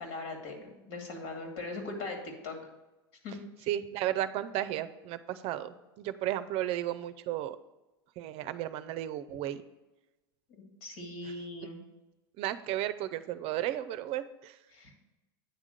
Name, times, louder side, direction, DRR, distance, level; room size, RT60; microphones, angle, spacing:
voice 1, 0.0-2.6 3.2-3.7 10.8-11.8 14.7-14.9, left 2 dB, 65° left, 2 dB, 2.4 m, -40 dB
voice 2, 3.7-7.6 8.2-9.6 12.4-14.5, right 13 dB, 50° right, 12 dB, 0.5 m, -34 dB
9.0 x 3.7 x 6.5 m, 1.0 s
hypercardioid pair, 95°, 13 cm